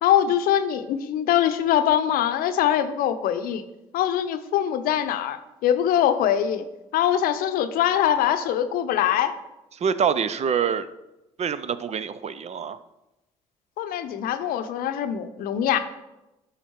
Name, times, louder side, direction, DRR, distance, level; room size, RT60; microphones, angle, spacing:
voice 1, 0.0-3.6 3.9-6.7 6.9-9.4 13.8-15.8, left 10 dB, 70° left, 10 dB, 0.7 m, -23 dB
voice 2, 9.8-10.9 11.4-12.8, right 7 dB, 45° right, 14 dB, 0.6 m, -25 dB
11.5 x 3.9 x 4.6 m, 0.96 s
hypercardioid pair, 50°, 16 cm